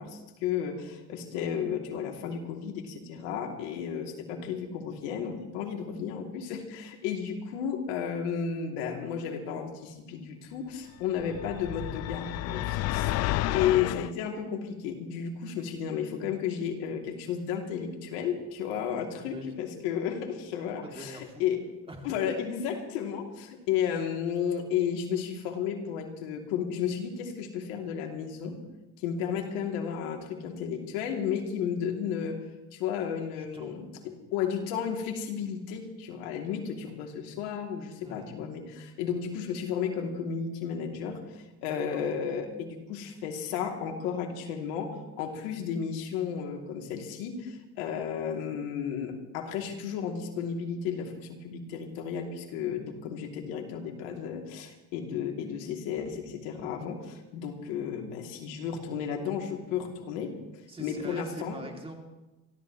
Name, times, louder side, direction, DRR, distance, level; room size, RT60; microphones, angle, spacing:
voice 1, 0.0-21.6 22.0-28.6 29.0-32.4 32.7-60.3 60.8-61.6, left 7 dB, 80° left, 2 dB, 2.8 m, -33 dB
sound 1, 11.2-14.1, left 15 dB, 50° left, 0.5 m, -31 dB
voice 2, 13.3-13.6 19.3-19.5 20.8-21.5 21.9-22.2 33.3-33.7 38.0-38.3 41.6-42.0 60.7-61.9, right 2 dB, 15° right, 2 dB, 2.7 m, -44 dB
28.0 x 13.5 x 3.1 m, 1.1 s
supercardioid pair, 115°, 34 cm